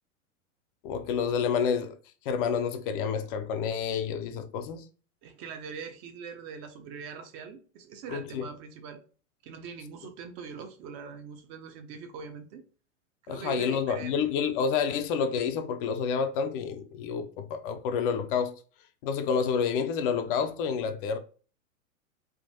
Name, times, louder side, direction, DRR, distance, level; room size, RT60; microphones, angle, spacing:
voice 1, 0.8-2.0 2.3-4.8 8.1-8.5 13.3-18.5 19.0-21.2, left 6 dB, 40° left, 0.5 m, -29 dB
voice 2, 5.2-9.0 9.4-12.6 13.3-14.2, right 6 dB, 35° right, 0.5 m, -42 dB
3.6 x 2.5 x 2.6 m
hypercardioid pair, 100°, 41 cm